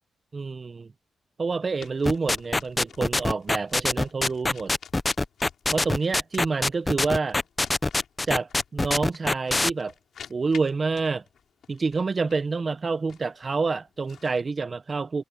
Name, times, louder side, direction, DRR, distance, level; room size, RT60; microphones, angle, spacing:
voice 1, 0.3-0.9 1.4-4.7 5.7-7.4 8.3-9.9 10.3-11.2 11.7-15.2, right 4 dB, 35° right, 0.8 m, -28 dB
sound 1, 1.8-14.5, left 8 dB, 70° left, 5.8 m, -50 dB
sound 2, 2.1-9.7, left 2 dB, 20° left, 0.7 m, -24 dB
cardioid pair, 105°, 0 cm